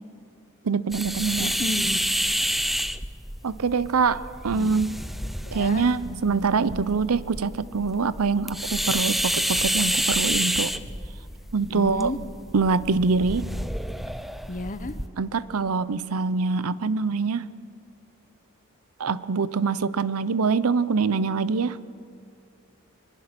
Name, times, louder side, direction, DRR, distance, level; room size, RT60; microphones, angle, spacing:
voice 1, 0.6-1.5 3.4-4.9 5.5-10.7 11.5-12.1 12.5-13.5 15.2-17.5 19.0-21.8, right 4 dB, 75° right, 17 dB, 0.6 m, -24 dB
sound 1, 0.9-15.1, equal, ahead, 0.5 m, -29 dB
voice 2, 1.4-2.0 4.5-4.7 5.5-5.9 11.7-12.2 14.5-14.9, left 2 dB, 35° left, 11 dB, 1.0 m, -32 dB
24.0 x 21.5 x 6.0 m, 2.3 s
head